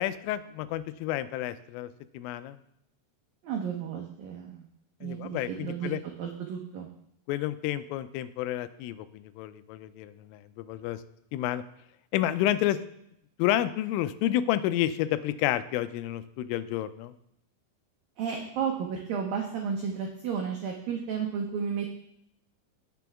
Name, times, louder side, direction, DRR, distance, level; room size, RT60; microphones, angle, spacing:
voice 1, 0.0-2.6 5.0-6.0 7.3-11.0 11.3-11.6 12.1-12.8 13.4-17.1, left 13 dB, 90° left, 13 dB, 3.2 m, -30 dB
voice 2, 3.4-4.6 5.0-5.9 6.2-6.9 18.2-21.9, right 7 dB, 90° right, 1 dB, 2.0 m, -32 dB
18.0 x 7.0 x 3.5 m, 0.76 s
omnidirectional pair, 5.7 m